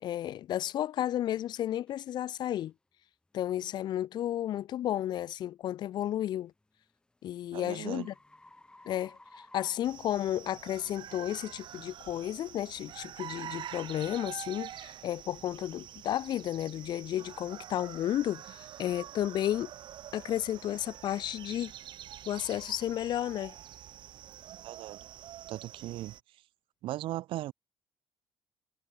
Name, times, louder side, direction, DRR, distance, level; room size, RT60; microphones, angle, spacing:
voice 1, 0.0-2.7 3.3-6.5 7.2-8.1 8.9-9.2 9.5-19.7 20.1-21.7 22.3-23.6, left 12 dB, 55° left, 0.4 m, -32 dB
sound 1, 1.9-2.0 2.5-2.7 3.3-3.6 6.2-10.7, left 2 dB, 10° left, 2.1 m, -57 dB
voice 2, 7.5-8.1 24.6-25.0 25.5-26.2 26.8-27.5, right 15 dB, 75° right, 0.4 m, -37 dB
sound 2, 9.8-26.2, right 11 dB, 60° right, 1.7 m, -46 dB
cardioid pair, 145°, 9 cm